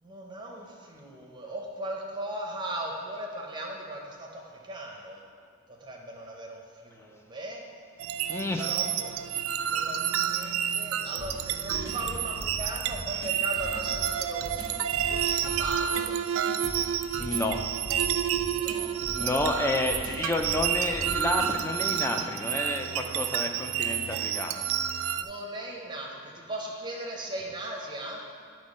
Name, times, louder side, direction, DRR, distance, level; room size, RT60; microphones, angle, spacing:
voice 1, 0.0-5.2 5.8-7.6 8.6-9.1 9.7-14.7 15.0-16.2 18.4-18.9 19.2-19.7 25.1-28.2, right 1 dB, 20° right, -1 dB, 0.8 m, -38 dB
sound 1, 8.0-25.3, right 9 dB, 80° right, 0.3 m, -30 dB
voice 2, 8.3-8.7 10.4-10.8 16.4-17.6 19.1-24.7, left 1 dB, 10° left, 3 dB, 0.4 m, -31 dB
sound 2, 11.2-22.1, equal, 80° left, 1.0 m, -41 dB
8.4 x 3.1 x 5.2 m, 2.1 s
head